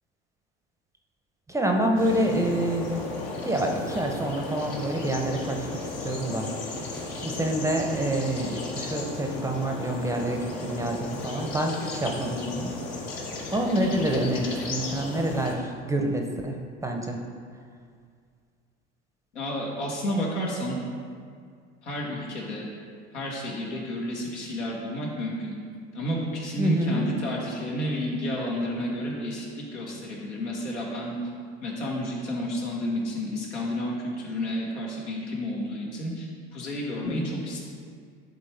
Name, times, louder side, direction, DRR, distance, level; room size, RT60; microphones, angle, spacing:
voice 1, 1.5-3.0 3.4-5.7 6.0-6.5 7.2-12.7 13.5-16.6 16.8-17.2 26.6-27.1 37.1-37.3, right 1 dB, 10° right, 2 dB, 0.7 m, -27 dB
sound 1, 2.0-15.6, left 3 dB, 65° left, 1.3 m, -35 dB
voice 2, 19.3-20.8 21.8-22.7 23.1-25.5 25.9-31.1 31.6-37.6, left 1 dB, 80° left, -3 dB, 1.6 m, -31 dB
11.0 x 3.7 x 3.4 m, 2.1 s
hypercardioid pair, 75°, 34 cm